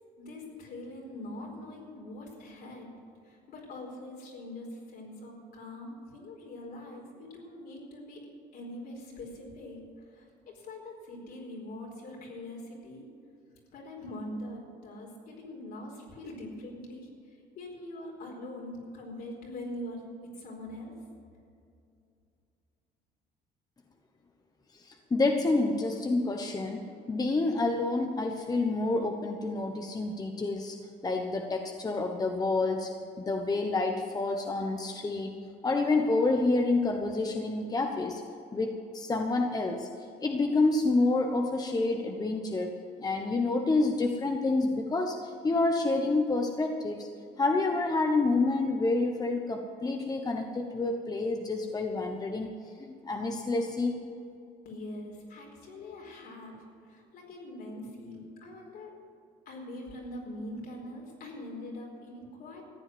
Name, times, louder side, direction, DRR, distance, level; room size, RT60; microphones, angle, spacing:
voice 1, 0.2-8.3 8.5-13.1 13.7-17.1 17.6-21.0 54.6-59.0 59.5-62.6, left 1 dB, 65° left, -1 dB, 4.5 m, -43 dB
voice 2, 24.9-30.8 31.0-32.9 33.2-35.4 35.6-38.2 38.5-39.9 40.2-47.1 47.4-52.5 52.8-54.0, left 3 dB, 20° left, 3 dB, 1.1 m, -28 dB
14.5 x 8.9 x 7.9 m, 2.5 s
cardioid pair, 110°, 17 cm